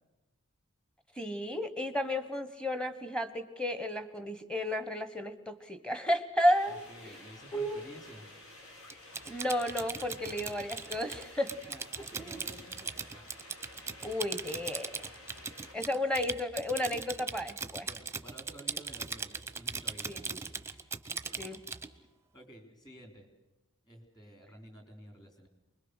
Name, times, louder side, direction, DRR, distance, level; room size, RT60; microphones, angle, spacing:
voice 1, 1.2-7.1 7.5-7.8 9.3-11.5 12.2-12.4 14.0-14.9 15.7-17.9 20.1-20.5 21.4-21.6, left 1 dB, 5° left, 9 dB, 1.3 m, -33 dB
sound 1, 6.5-15.8, left 2 dB, 70° left, 4.5 m, -52 dB
voice 2, 6.7-8.3 11.7-13.2 15.8-15.9 17.9-20.4 20.7-21.4 21.7-21.8 22.3-23.3 23.9-25.5, right 1 dB, 20° left, 4 dB, 3.6 m, -52 dB
Typing, 8.9-21.9, right 5 dB, 10° right, 0.9 m, -39 dB
24.5 x 21.5 x 6.5 m, 1.1 s
head